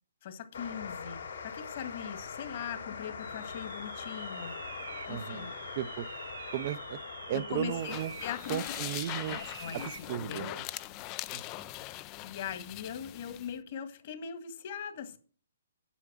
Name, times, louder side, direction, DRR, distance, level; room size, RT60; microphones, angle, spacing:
voice 1, 0.2-4.5 5.1-5.5 7.3-8.8 9.3-10.6 12.2-15.2, left 8 dB, 45° left, 1.8 m, -40 dB
sound 1, 0.5-13.5, left 6 dB, 85° left, 3.2 m, -44 dB
sound 2, 3.2-10.1, right 7 dB, 70° right, 0.8 m, -47 dB
voice 2, 5.1-5.5 5.8-6.1 6.5-7.0 7.3-8.1 8.5-9.4 9.7-10.6 11.3-11.6, right 12 dB, 40° right, 0.5 m, -35 dB
sound 3, 7.7-13.5, left 17 dB, 25° left, 0.4 m, -41 dB
8.3 x 6.6 x 7.4 m
hypercardioid pair, 150°, 0 cm